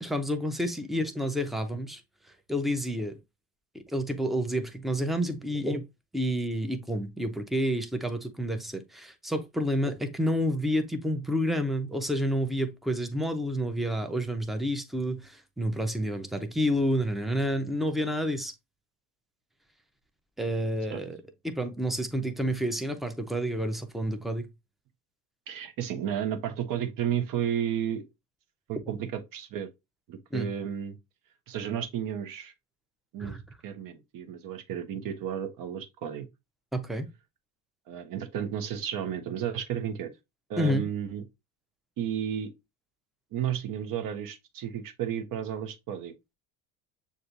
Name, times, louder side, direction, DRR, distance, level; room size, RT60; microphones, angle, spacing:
voice 1, 0.0-2.0 2.5-3.2 3.7-5.8 6.1-18.5 20.4-21.2 21.4-24.5 30.3-30.5 33.2-33.4 36.7-37.1 40.6-40.8, equal, ahead, 0.6 m, -29 dB
voice 2, 25.5-28.0 28.7-29.7 30.1-31.0 31.5-32.5 33.1-33.3 33.6-36.3 37.9-40.1 40.5-41.2 42.0-42.5 43.3-46.1, right 9 dB, 50° right, 1.0 m, -32 dB
6.6 x 2.6 x 2.6 m
hypercardioid pair, 85°, 42 cm